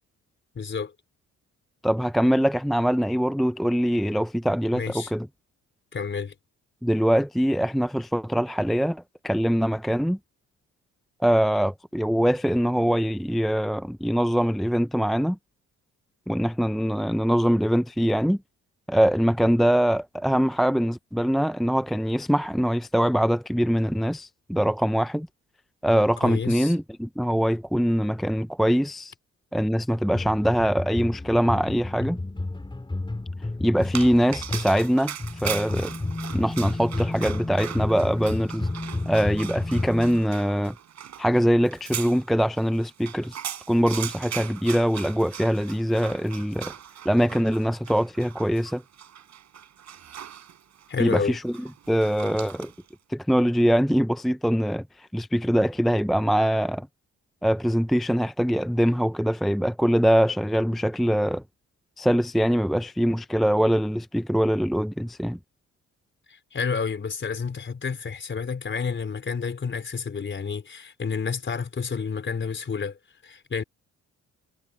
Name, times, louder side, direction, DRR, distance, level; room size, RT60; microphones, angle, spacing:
voice 1, 0.5-0.9 4.7-5.1 5.9-6.3 26.2-26.7 50.9-51.4 66.3-73.0 73.2-73.6, left 5 dB, 40° left, 4.1 m, -30 dB
voice 2, 1.8-5.3 6.8-10.2 11.2-15.4 16.3-18.4 18.9-25.3 25.8-29.1 29.5-32.2 33.6-35.9 36.3-38.7 39.1-40.8 41.2-43.4 43.7-46.7 47.0-48.8 51.0-52.7 53.1-56.9 57.4-61.4 62.0-65.4, equal, ahead, 0.5 m, -23 dB
sound 1, 30.1-40.2, left 2 dB, 15° left, 5.0 m, -31 dB
Dog, 33.8-52.9, right 9 dB, 65° right, 7.1 m, -39 dB
cardioid pair, 90°, 30 cm